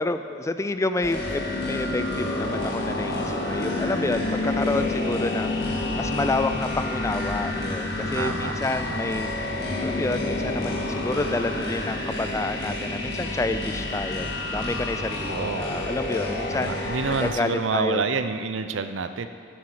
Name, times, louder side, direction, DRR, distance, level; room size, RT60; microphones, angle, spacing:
voice 1, 0.0-9.5 9.8-16.9 17.2-18.0, left 2 dB, 15° left, 10 dB, 0.3 m, -29 dB
sound 1, 1.0-17.3, left 2 dB, 60° left, 1.7 m, -29 dB
voice 2, 8.1-9.0 15.3-15.7 16.4-19.3, right 4 dB, 80° right, 10 dB, 0.6 m, -28 dB
14.0 x 7.9 x 4.9 m, 2.4 s
head